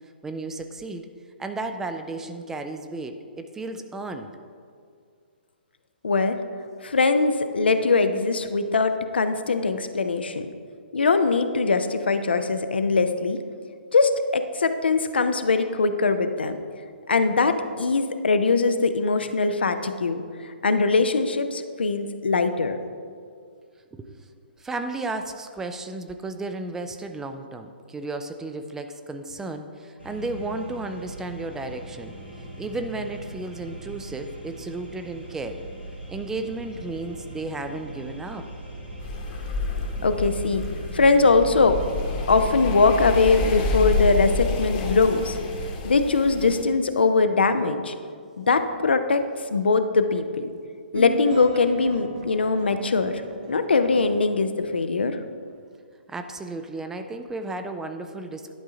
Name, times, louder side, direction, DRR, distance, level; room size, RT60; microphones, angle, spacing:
voice 1, 0.2-1.1 1.4-4.3 23.9-24.2 24.6-32.1 32.6-35.6 36.1-38.5 56.1-58.5, right 2 dB, 10° right, 7 dB, 0.3 m, -33 dB
voice 2, 6.0-6.4 6.8-10.5 10.9-13.4 13.9-16.6 17.1-22.8 40.0-40.6 40.9-41.8 42.3-45.4 45.8-47.9 48.4-49.2 49.5-50.5 50.9-53.2 53.5-55.2, left 4 dB, 70° left, 9 dB, 0.5 m, -21 dB
sound 1, 30.0-45.7, right 2 dB, 90° right, 2.0 m, -39 dB
sound 2, 39.0-46.6, left 4 dB, 35° left, 1.1 m, -29 dB
sound 3, 50.9-55.5, right 3 dB, 45° right, 0.8 m, -37 dB
11.0 x 3.7 x 5.0 m, 2.2 s
figure-of-eight pair, 125°, 6 cm